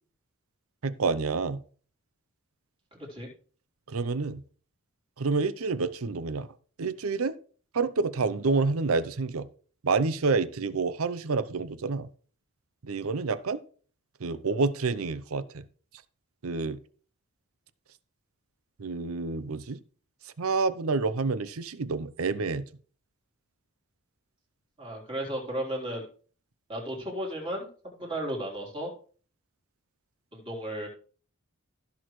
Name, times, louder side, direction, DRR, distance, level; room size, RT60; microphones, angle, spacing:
voice 1, 0.8-1.6 3.9-4.4 5.2-6.5 6.8-7.3 7.7-9.5 9.8-12.1 12.8-13.6 14.2-15.6 16.4-16.8 18.8-19.8 20.2-22.7, right 4 dB, 75° right, 0.6 m, -28 dB
voice 2, 24.8-26.1 26.7-28.9 30.3-30.9, right 1 dB, 25° right, 3.6 m, -34 dB
15.5 x 6.2 x 3.2 m
head